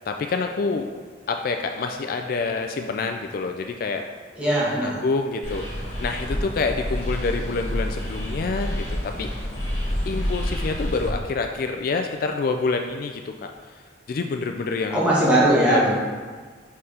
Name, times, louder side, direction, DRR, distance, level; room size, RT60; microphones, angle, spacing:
voice 1, 0.1-0.9 1.3-4.0 4.8-5.7 6.0-9.3 10.1-15.4 15.7-15.9, left 4 dB, 50° left, 5 dB, 0.3 m, -27 dB
voice 2, 4.4-4.9 14.9-16.0, right 1 dB, 5° right, -8 dB, 1.6 m, -19 dB
sound 1, 5.4-11.1, equal, 35° left, 1.9 m, -28 dB
4.9 x 4.5 x 5.6 m, 1.5 s
head